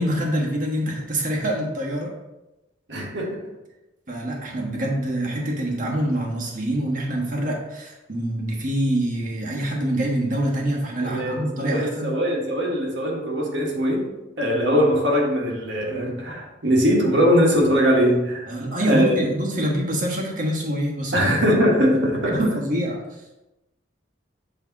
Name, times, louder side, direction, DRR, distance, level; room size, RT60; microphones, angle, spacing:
voice 1, 0.0-2.1 4.1-12.1 18.5-21.4 22.3-23.2, right 1 dB, 40° right, -2 dB, 1.3 m, -25 dB
voice 2, 2.9-3.4 11.0-14.1 14.4-18.5 18.9-19.2 21.1-22.4, equal, 65° right, -2 dB, 1.6 m, -21 dB
8.5 x 3.3 x 4.1 m, 0.98 s
head